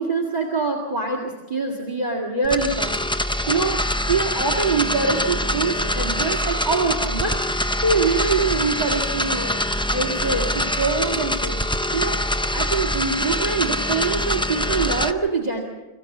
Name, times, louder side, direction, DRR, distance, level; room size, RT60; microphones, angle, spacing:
voice 1, 0.0-3.0 3.5-3.8 4.1-7.4 7.8-9.5 9.9-11.6 11.9-12.2 12.5-15.6, right 4 dB, 40° right, 0 dB, 2.2 m, -24 dB
sound 1, 2.4-15.1, equal, 5° left, 0.5 m, -24 dB
25.5 x 15.0 x 7.2 m, 1.2 s
omnidirectional pair, 1.1 m